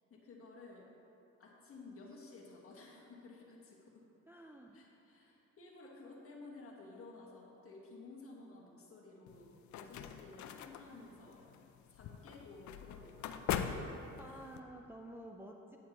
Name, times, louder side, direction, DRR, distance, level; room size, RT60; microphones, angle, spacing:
voice 1, 0.1-0.9 1.4-4.0 4.7-11.5 11.9-13.8 14.2-14.4, left 3 dB, 45° left, -2 dB, 1.6 m, -54 dB
voice 2, 4.3-4.8 12.5-12.6 14.2-15.8, right 1 dB, 10° right, 1 dB, 0.4 m, -51 dB
sound 1, 9.3-14.6, left 8 dB, 70° left, 0.5 m, -42 dB
8.7 x 8.3 x 3.0 m, 2.9 s
cardioid pair, 90°, 30 cm